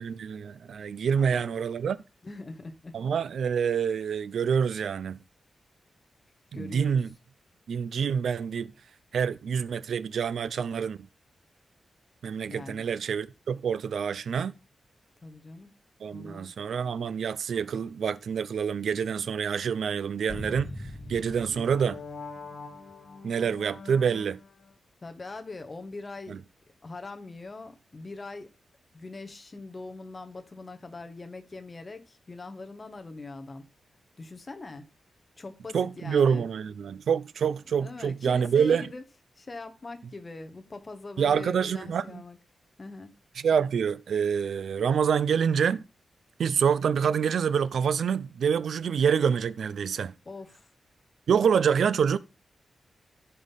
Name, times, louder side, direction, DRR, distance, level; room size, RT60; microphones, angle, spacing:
voice 1, 0.0-2.0 2.9-5.2 6.5-7.1 7.7-8.7 9.1-11.1 12.2-14.5 16.0-20.7 21.1-22.0 23.2-24.4 26.3-26.4 35.7-38.9 41.2-42.2 43.4-45.9 46.4-50.1 51.3-52.2, right 7 dB, 75° right, 0.5 m, -26 dB
voice 2, 1.2-1.5 2.2-2.9 6.5-7.0 12.4-12.8 15.2-15.7 16.1-16.5 25.0-26.4 26.8-28.5 28.9-33.6 34.2-34.8 35.4-36.5 37.4-39.0 39.4-42.4 42.8-43.1 50.2-50.7, left 3 dB, 25° left, 1.3 m, -42 dB
sound 1, 20.3-24.7, left 2 dB, 50° left, 1.7 m, -42 dB
14.0 x 5.6 x 4.1 m
wide cardioid pair, 175°, 0 cm